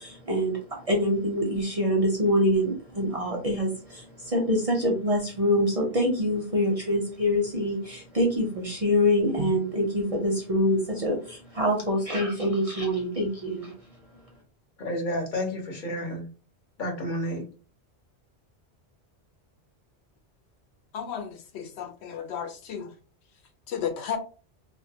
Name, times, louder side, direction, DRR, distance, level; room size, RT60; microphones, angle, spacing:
voice 1, 0.0-13.7, equal, 45° right, -1 dB, 0.5 m, -25 dB
voice 2, 14.8-16.3 16.8-17.4, left 1 dB, 50° left, 1 dB, 0.9 m, -30 dB
voice 3, 20.9-22.9 23.7-24.2, left 8 dB, 80° left, 5 dB, 0.9 m, -33 dB
2.2 x 2.2 x 2.7 m, 0.36 s
omnidirectional pair, 1.1 m